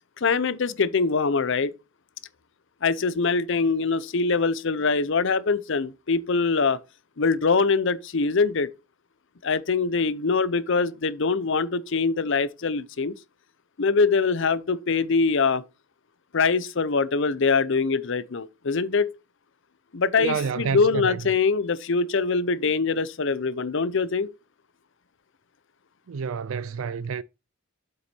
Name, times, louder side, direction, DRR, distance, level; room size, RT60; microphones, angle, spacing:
voice 1, 0.2-1.7 2.8-6.8 7.2-8.7 9.4-13.2 13.8-15.6 16.3-19.1 19.9-24.3, left 4 dB, 60° left, 0.7 m, -23 dB
voice 2, 20.2-21.2 26.1-27.2, right 6 dB, 75° right, 0.4 m, -29 dB
7.8 x 5.8 x 4.3 m
head